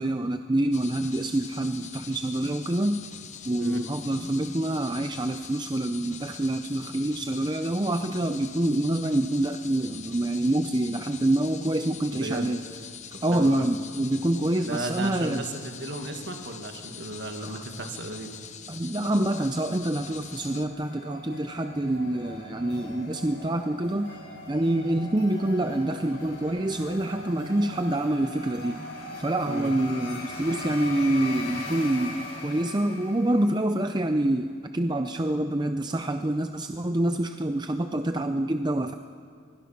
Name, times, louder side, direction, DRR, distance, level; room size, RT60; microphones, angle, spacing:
voice 1, 0.0-3.1 3.4-12.6 13.2-15.4 17.4-17.6 18.7-28.8 29.2-38.9, right 1 dB, 20° right, 7 dB, 0.6 m, -26 dB
sound 1, 0.7-20.7, left 7 dB, 35° left, 1.0 m, -44 dB
voice 2, 12.1-12.5 13.1-13.6 14.6-18.3 29.5-29.7, right 2 dB, 55° right, 4 dB, 2.2 m, -35 dB
sound 2, 19.2-33.8, left 2 dB, 60° left, 6.3 m, -40 dB
25.0 x 20.5 x 6.0 m, 2.2 s
head